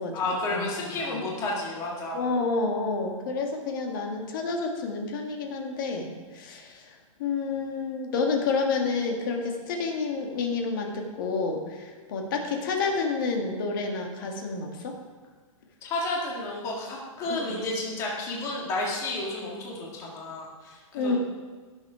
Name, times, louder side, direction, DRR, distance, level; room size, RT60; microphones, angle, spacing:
voice 1, 0.1-2.2 15.8-21.2, left 2 dB, 15° left, -3 dB, 1.8 m, -31 dB
voice 2, 1.0-1.3 2.1-14.9 17.3-17.7 20.9-21.2, left 4 dB, 35° left, 2 dB, 1.8 m, -29 dB
16.5 x 7.0 x 4.9 m, 1.5 s
hypercardioid pair, 180°, 18 cm